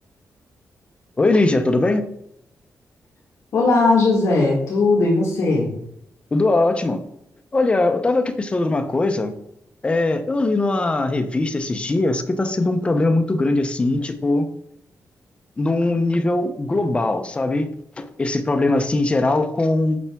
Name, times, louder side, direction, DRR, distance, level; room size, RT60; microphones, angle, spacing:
voice 1, 1.2-2.1 6.3-7.0 7.5-9.3 9.8-14.5 15.6-17.7 18.0-20.0, left 2 dB, 20° left, 7 dB, 0.6 m, -20 dB
voice 2, 3.5-5.7, left 3 dB, 60° left, -3 dB, 1.6 m, -18 dB
8.4 x 5.5 x 3.5 m, 0.77 s
wide cardioid pair, 170°, 6 cm